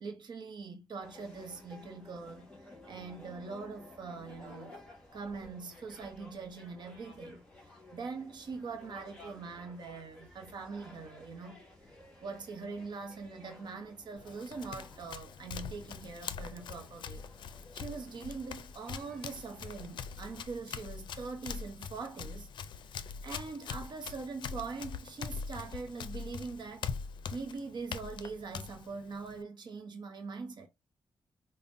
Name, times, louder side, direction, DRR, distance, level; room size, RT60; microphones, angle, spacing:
voice 1, 0.0-4.8 5.1-11.6 12.2-17.2 17.7-23.0 23.2-26.9 27.3-30.7, right 4 dB, 70° right, 0.7 m, -43 dB
sound 1, 1.0-20.5, left 1 dB, 10° left, 1.7 m, -55 dB
Run, 14.2-29.4, left 6 dB, 80° left, 0.4 m, -43 dB
5.1 x 2.1 x 2.5 m
cardioid pair, 90°, 8 cm